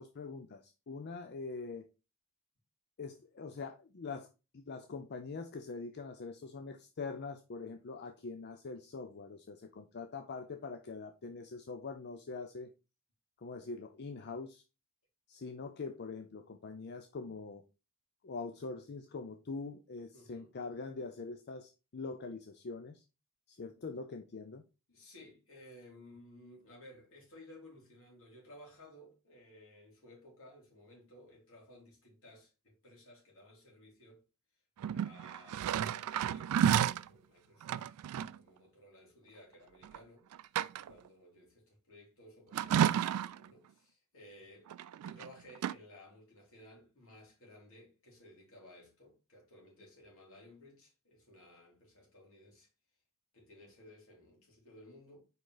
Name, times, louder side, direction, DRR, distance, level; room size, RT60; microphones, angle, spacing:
voice 1, 0.0-1.9 3.0-4.3 4.5-12.7 13.4-14.6 15.3-17.6 18.2-23.0 23.5-24.6, left 4 dB, 50° left, 0.5 m, -43 dB
voice 2, 20.1-20.5 24.9-34.2 34.9-40.5 40.8-52.7 53.3-55.3, left 1 dB, 65° left, 3.3 m, -57 dB
sound 1, 34.8-37.1 37.6-38.4 39.8-40.0 40.3-41.1 42.5-43.5 44.7-45.3 45.6-45.7, right 9 dB, 90° right, 0.3 m, -31 dB
5.1 x 4.9 x 3.9 m
head